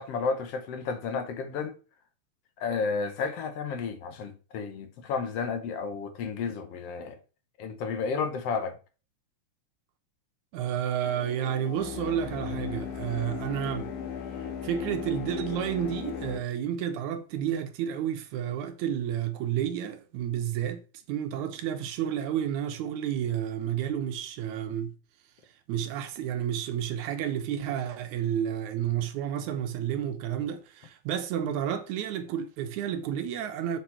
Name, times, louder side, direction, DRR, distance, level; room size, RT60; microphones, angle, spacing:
voice 1, 0.0-1.8 2.6-7.2 7.6-8.8, left 5 dB, 65° left, 1.8 m, -32 dB
voice 2, 10.5-13.9 14.6-20.8 21.1-24.9 25.7-33.8, right 9 dB, 80° right, 2.2 m, -31 dB
sound 1, 11.0-16.4, left 7 dB, 90° left, 2.4 m, -37 dB
7.0 x 4.2 x 4.3 m
omnidirectional pair, 3.4 m